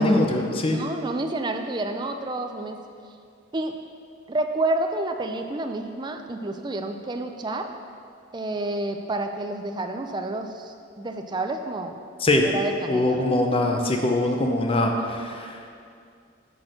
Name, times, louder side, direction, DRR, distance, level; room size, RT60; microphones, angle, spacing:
voice 1, 0.0-0.8 12.2-12.5 12.9-15.6, left 1 dB, 25° left, 2 dB, 0.6 m, -22 dB
voice 2, 0.6-2.8 3.5-3.7 4.3-7.7 8.3-12.0 12.4-13.2, right 2 dB, 20° right, 5 dB, 0.4 m, -29 dB
6.2 x 6.0 x 5.0 m, 2.3 s
head